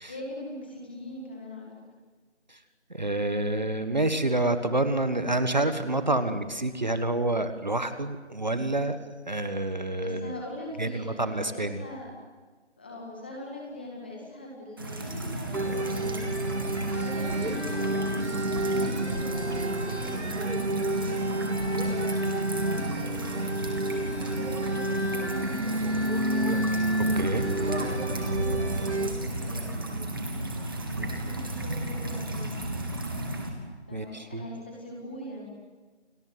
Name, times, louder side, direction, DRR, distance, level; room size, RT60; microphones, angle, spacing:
voice 1, 0.1-1.7 10.0-12.1 12.8-23.4 23.9-26.0 27.5-30.1 30.9-32.5 33.9-35.5, left 1 dB, 10° left, -1 dB, 2.0 m, -42 dB
voice 2, 2.9-9.0 9.2-10.3 10.8-11.8 27.1-27.5 31.0-31.4 33.9-34.5, right 2 dB, 40° right, 10 dB, 1.5 m, -28 dB
sound 1, 14.8-33.5, right 1 dB, 20° right, 2.2 m, -34 dB
sound 2, 15.5-29.1, right 1 dB, 70° right, 2.5 m, -29 dB
29.5 x 19.5 x 9.4 m, 1.4 s
figure-of-eight pair, 170°, 35 cm